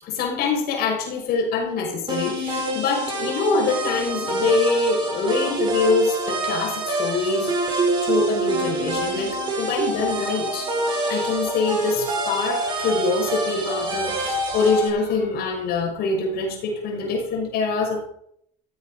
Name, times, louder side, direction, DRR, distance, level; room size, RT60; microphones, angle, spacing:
voice 1, 0.0-10.7 11.1-18.0, left 4 dB, 65° left, 2 dB, 5.7 m, -24 dB
sound 1, 2.1-14.9, right 2 dB, 30° right, 7.8 m, -26 dB
14.5 x 14.0 x 5.6 m, 0.70 s
cardioid pair, 115°, 17 cm